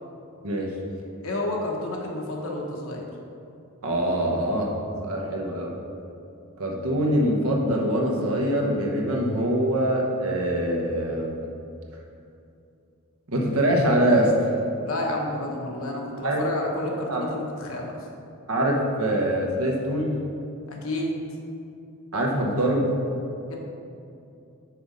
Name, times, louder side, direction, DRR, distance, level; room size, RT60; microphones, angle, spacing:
voice 1, 1.2-3.0 14.8-17.9 20.7-21.1 23.5-23.6, left 1 dB, 75° left, -1 dB, 1.1 m, -30 dB
voice 2, 3.8-4.7 5.0-5.8 6.6-11.4 13.3-14.5 16.2-16.4 16.9-17.3 18.5-20.2 22.1-22.9, right 1 dB, 85° right, 0 dB, 1.1 m, -24 dB
6.1 x 4.8 x 5.2 m, 2.7 s
head